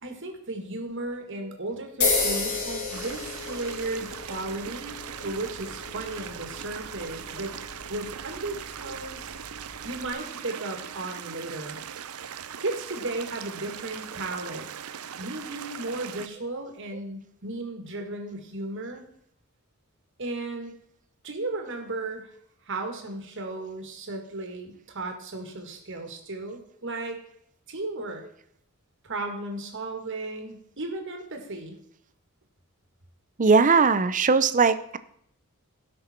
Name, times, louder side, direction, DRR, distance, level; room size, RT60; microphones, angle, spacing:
voice 1, 0.0-5.0 5.2-7.6 7.9-11.8 12.2-12.3 12.6-14.7 15.2-19.1 20.2-20.7 21.2-22.3 22.6-27.2 27.7-28.2 29.0-31.8, right 2 dB, 60° right, 4 dB, 2.1 m, -35 dB
sound 1, 2.0-10.1, left 4 dB, 80° left, 3.7 m, -33 dB
sound 2, 2.9-16.3, right 8 dB, 75° right, 0.6 m, -40 dB
voice 2, 33.4-35.0, right 4 dB, 35° right, 13 dB, 0.6 m, -20 dB
16.5 x 6.2 x 4.5 m, 0.71 s
head